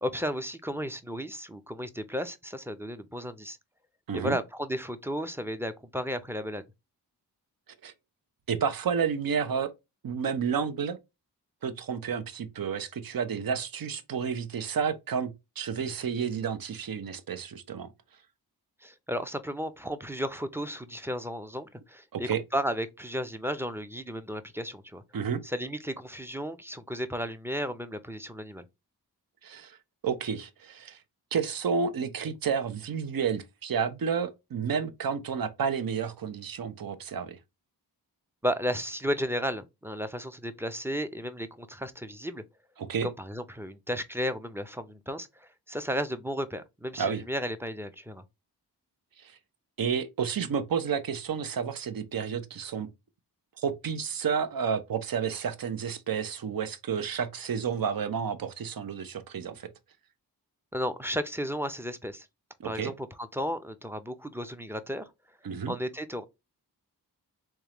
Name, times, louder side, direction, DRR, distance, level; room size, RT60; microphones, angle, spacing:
voice 1, 0.0-3.6 4.1-6.6 18.8-25.0 25.4-28.6 38.4-42.4 43.0-48.2 60.7-62.3 62.6-65.1 65.7-66.2, equal, 5° right, 0.5 m, -34 dB
voice 2, 4.1-4.4 7.8-7.9 8.5-9.7 10.0-11.0 11.6-17.9 22.1-22.4 25.1-25.4 29.4-29.8 30.0-31.0 31.3-37.4 42.9-43.1 47.0-47.2 49.2-49.4 49.8-52.9 53.6-59.7 62.6-62.9 65.4-65.7, right 6 dB, 60° right, 0.7 m, -31 dB
3.6 x 3.1 x 2.9 m
cardioid pair, 55°, 40 cm